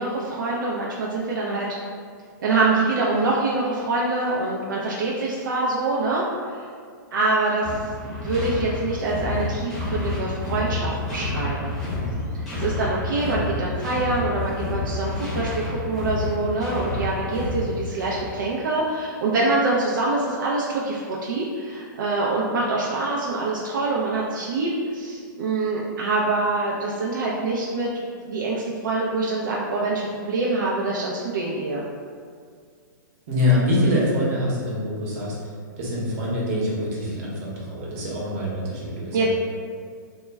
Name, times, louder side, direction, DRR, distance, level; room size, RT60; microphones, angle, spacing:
voice 1, 0.0-1.7 2.4-6.6 7.1-11.7 12.6-31.8 39.1-39.3, right 2 dB, 75° right, -4 dB, 0.4 m, -25 dB
sound 1, 7.6-18.4, left 2 dB, ahead, 0.7 m, -29 dB
voice 2, 33.3-35.3 35.8-39.3, left 1 dB, 45° right, -5 dB, 0.8 m, -24 dB
2.1 x 2.1 x 3.3 m, 2.1 s
hypercardioid pair, 135°, 11 cm